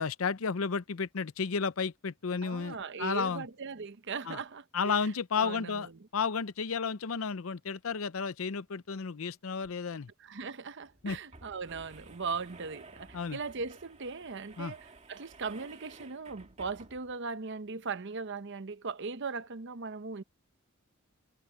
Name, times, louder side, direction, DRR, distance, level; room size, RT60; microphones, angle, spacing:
voice 1, 0.0-3.4 4.3-4.4 4.7-5.9 6.1-10.1 11.0-11.2 13.1-13.4 14.6-14.7, left 5 dB, 75° left, 0.6 m, -32 dB
voice 2, 2.4-5.0 5.4-5.9 10.2-20.2, right 4 dB, 60° right, 0.9 m, -39 dB
sound 1, 9.6-9.7 10.0-10.1 10.8-17.2, right 3 dB, 35° right, 2.1 m, -54 dB
head